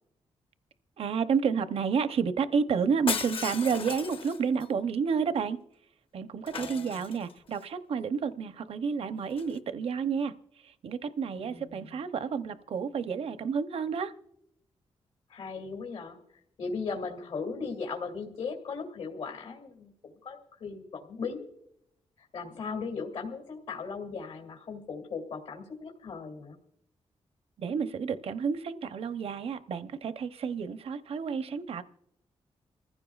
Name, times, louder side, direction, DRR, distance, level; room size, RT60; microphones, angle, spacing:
voice 1, 1.0-5.6 6.1-10.3 10.6-14.1 27.6-31.8, right 6 dB, 65° right, 11 dB, 0.7 m, -30 dB
Shatter, 3.1-4.7 6.5-7.6 9.3-9.6, left 6 dB, 60° left, 1.0 m, -36 dB
voice 2, 6.5-7.0 11.3-12.0 15.3-16.2 16.6-21.5 22.2-26.6, left 4 dB, 80° left, 2 dB, 2.4 m, -38 dB
27.5 x 15.0 x 2.4 m, 0.78 s
wide cardioid pair, 115°, 11 cm